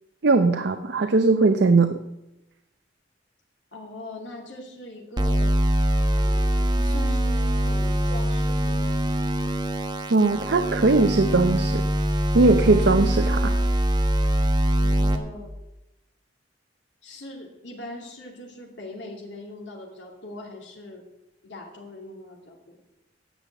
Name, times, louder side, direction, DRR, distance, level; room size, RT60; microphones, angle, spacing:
voice 1, 0.2-2.0 10.1-11.8 12.3-13.6, right 3 dB, 60° right, 8 dB, 0.6 m, -19 dB
voice 2, 3.7-5.6 6.2-9.0 14.7-15.5 17.0-21.0 21.4-22.6, left 1 dB, 70° left, -1 dB, 2.5 m, -41 dB
sound 1, 5.2-15.2, equal, 25° right, 1.0 m, -23 dB
10.0 x 6.9 x 8.3 m, 0.92 s
head